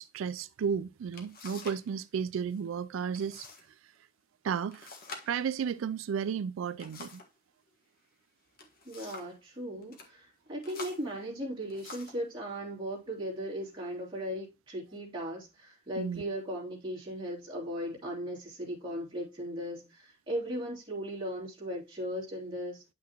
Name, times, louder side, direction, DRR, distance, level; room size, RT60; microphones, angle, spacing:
voice 1, 0.0-3.9 4.4-4.9 5.3-7.2 16.0-16.2, right 7 dB, 85° right, 0.3 m, -33 dB
sound 1, 0.6-0.7 1.1-1.9 2.1-2.6 3.1-3.7 4.0-4.1 4.7-7.4 8.3-9.4 9.8-10.1 10.6-12.3 13.0-13.2 13.8-14.3, left 3 dB, 45° left, 1.5 m, -48 dB
voice 2, 8.8-22.8, equal, 25° right, 3.1 m, -37 dB
9.6 x 6.0 x 2.9 m
head